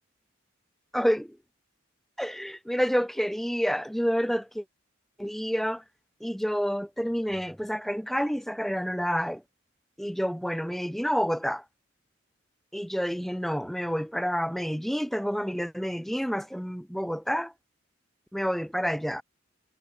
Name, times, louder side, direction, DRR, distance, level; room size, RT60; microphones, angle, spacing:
voice 1, 0.9-1.4 2.2-4.6 5.2-5.8 6.2-9.4 10.0-11.6 12.7-17.5 18.3-19.2, equal, ahead, 2.3 m, -29 dB
head